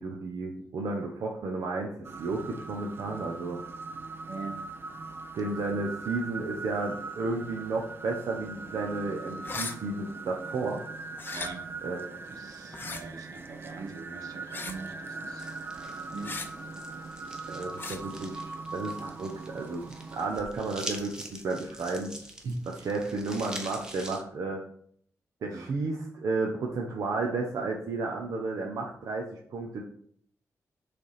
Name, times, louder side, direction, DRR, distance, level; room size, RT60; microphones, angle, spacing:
voice 1, 0.0-3.6 5.3-10.8 11.8-12.1 17.5-22.1 22.8-24.6 25.4-29.8, right 3 dB, 70° right, 0 dB, 0.9 m, -32 dB
sound 1, 2.0-20.4, right 3 dB, 40° right, 0.6 m, -41 dB
voice 2, 4.3-4.6 11.3-11.7 12.3-15.5 16.1-16.4 22.4-22.9 25.4-25.6, right 3 dB, 85° right, 4 dB, 1.3 m, -41 dB
sound 2, 9.4-9.8 11.2-11.5 12.7-13.0 14.5-14.8 16.2-16.5 17.8-18.0, left 4 dB, 35° left, 0.6 m, -36 dB
sound 3, 15.4-24.2, right 1 dB, 10° right, 0.9 m, -45 dB
6.6 x 3.5 x 5.7 m, 0.64 s
wide cardioid pair, 160°, 6 cm